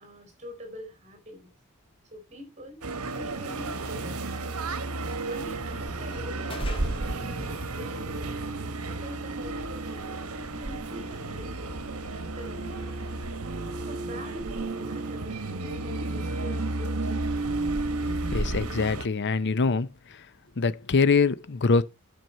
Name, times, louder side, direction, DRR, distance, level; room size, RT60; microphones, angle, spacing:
voice 1, 0.0-1.5 2.1-4.9 5.3-8.4 8.8-10.2 10.6-11.8 12.1-13.0 13.8-17.3, equal, 30° right, 4.0 m, -45 dB
sound 1, 2.8-19.1, right 2 dB, 70° right, 1.2 m, -32 dB
sound 2, 5.8-13.3, left 1 dB, 25° left, 1.7 m, -46 dB
voice 2, 18.0-19.9 20.6-21.8, left 4 dB, 50° left, 0.7 m, -24 dB
9.3 x 7.1 x 4.3 m
head